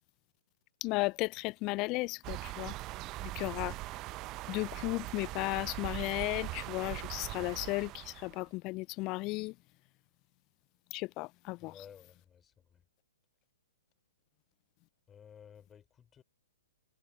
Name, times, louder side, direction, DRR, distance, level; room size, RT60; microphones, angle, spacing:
voice 1, 0.8-2.7 3.2-3.7 4.5-9.5 10.9-11.8, left 23 dB, 30° left, 0.6 m, -35 dB
sound 1, 2.2-8.4, right 19 dB, 30° right, 0.9 m, -41 dB
voice 2, 11.6-12.8 15.1-16.2, left 8 dB, 15° left, 3.9 m, -55 dB
figure-of-eight pair, 120°, 0 cm